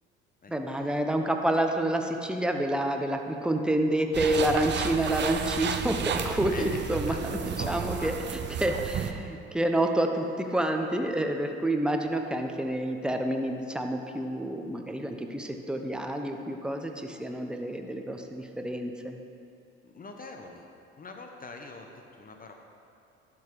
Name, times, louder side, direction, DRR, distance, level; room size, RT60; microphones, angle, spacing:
voice 1, 0.5-7.1 7.4-19.2, right 1 dB, 5° right, 4 dB, 0.9 m, -28 dB
sound 1, 4.1-9.1, right 7 dB, 35° right, 0.7 m, -32 dB
voice 2, 6.5-8.4 19.8-20.7 21.0-22.5, left 3 dB, 25° left, 3 dB, 1.1 m, -44 dB
11.5 x 6.2 x 4.7 m, 2.6 s
figure-of-eight pair, 60°, 33 cm